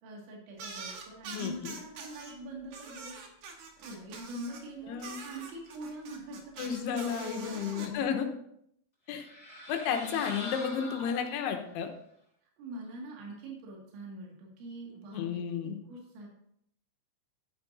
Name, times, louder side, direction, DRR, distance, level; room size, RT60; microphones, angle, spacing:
voice 1, 0.0-3.2 3.8-8.3 12.6-16.3, right 1 dB, 80° right, -2 dB, 4.4 m, -44 dB
sound 1, 0.6-2.3 2.7-4.6 5.0-7.9, right 5 dB, 65° right, 2.2 m, -44 dB
voice 2, 1.3-1.8 4.9-5.2 6.6-8.3 9.1-9.3 9.7-11.9 15.1-15.8, left 7 dB, 75° left, 5 dB, 2.9 m, -32 dB
sound 2, 9.1-11.7, left 2 dB, 10° left, 2.2 m, -44 dB
11.5 x 10.5 x 2.7 m, 0.71 s
omnidirectional pair, 5.1 m